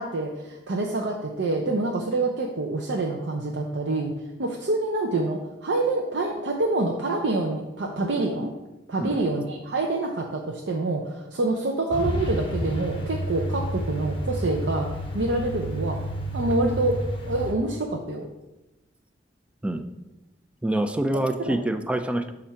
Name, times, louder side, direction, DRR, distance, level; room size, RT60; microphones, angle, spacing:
voice 1, 0.0-4.1 4.4-8.5 8.9-14.9 15.1-16.0 16.3-16.9 17.3-18.3 21.5-21.6, right 2 dB, 85° right, 0 dB, 0.6 m, -26 dB
Truck, 11.9-17.5, right 1 dB, 30° left, 0.9 m, -30 dB
voice 2, 20.6-22.3, right 1 dB, 5° right, 8 dB, 0.3 m, -26 dB
7.1 x 2.5 x 5.7 m, 1.0 s
head